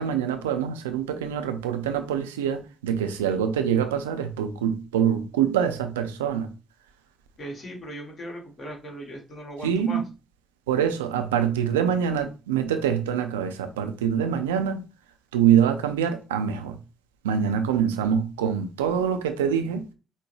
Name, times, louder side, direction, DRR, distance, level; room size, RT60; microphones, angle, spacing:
voice 1, 0.0-6.5 9.6-10.0 10.7-14.8 15.3-16.8 17.2-19.8, right 8 dB, 80° right, 0.4 m, -25 dB
voice 2, 7.4-10.0, equal, 45° left, 1.6 m, -38 dB
5.4 x 2.1 x 3.0 m
figure-of-eight pair, 40°, 0 cm